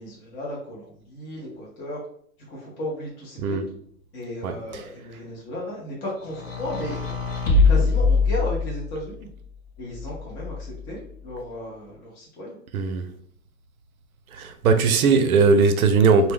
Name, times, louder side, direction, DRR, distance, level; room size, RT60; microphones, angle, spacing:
voice 1, 0.0-2.0 2.5-3.7 4.1-7.0 7.7-9.3 9.8-12.6, left 1 dB, 20° left, 0.5 m, -34 dB
sound 1, 6.3-9.0 9.9-10.9, left 4 dB, 60° left, 0.8 m, -22 dB
voice 2, 12.7-13.1 14.4-16.3, right 4 dB, 75° right, 0.5 m, -19 dB
2.2 x 2.1 x 3.2 m
hypercardioid pair, 115°, 43 cm